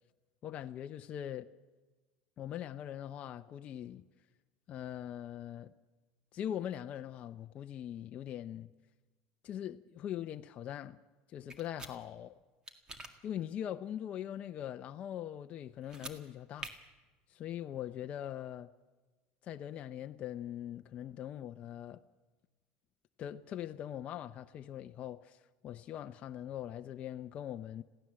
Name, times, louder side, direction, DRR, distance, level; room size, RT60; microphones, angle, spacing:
voice 1, 0.4-1.5 2.4-4.0 4.7-5.7 6.3-8.7 9.4-11.0 11.3-12.3 13.2-16.7 17.3-18.7 19.4-22.0 23.2-27.8, left 10 dB, 40° left, 0.6 m, -41 dB
sound 1, 11.5-11.9 12.7-13.1 15.8-16.2 16.6-16.7, right 2 dB, 20° right, 1.9 m, -45 dB
22.0 x 15.5 x 7.6 m
supercardioid pair, 140°, 4 cm